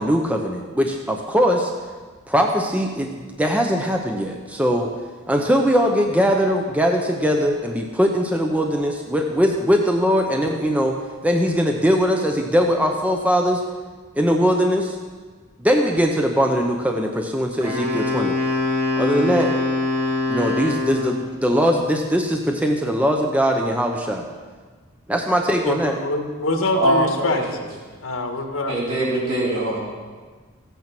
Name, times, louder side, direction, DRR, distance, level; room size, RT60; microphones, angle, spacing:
voice 1, 0.0-1.7 2.3-3.1 3.4-4.9 5.3-13.6 14.1-15.0 15.6-18.3 19.0-19.5 20.3-24.3 25.1-25.9, equal, 5° right, 2 dB, 0.8 m, -20 dB
Wind instrument woodwind instrument, 17.6-21.3, left 2 dB, 30° right, 2.4 m, -23 dB
voice 2, 25.7-27.4 28.0-28.8, left 2 dB, 85° left, 3 dB, 1.8 m, -24 dB
voice 3, 26.8-27.4 28.7-29.8, right 1 dB, 70° right, -6 dB, 4.7 m, -22 dB
15.0 x 9.2 x 6.0 m, 1.4 s
head